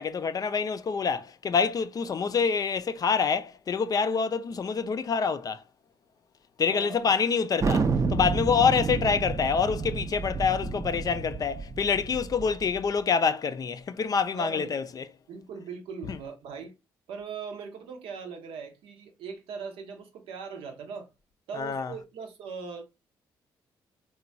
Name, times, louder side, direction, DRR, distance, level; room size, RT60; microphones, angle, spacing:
voice 1, 0.0-5.6 6.6-15.0 16.1-16.2 21.5-21.9, left 6 dB, 40° left, 0.4 m, -26 dB
voice 2, 6.7-7.2 14.3-14.9 15.3-16.7 17.1-21.1 21.5-22.8, right 5 dB, 75° right, 0.6 m, -40 dB
Thunder, 7.6-12.8, right 4 dB, 35° right, 0.5 m, -30 dB
3.0 x 2.2 x 2.5 m
supercardioid pair, 55°, 9 cm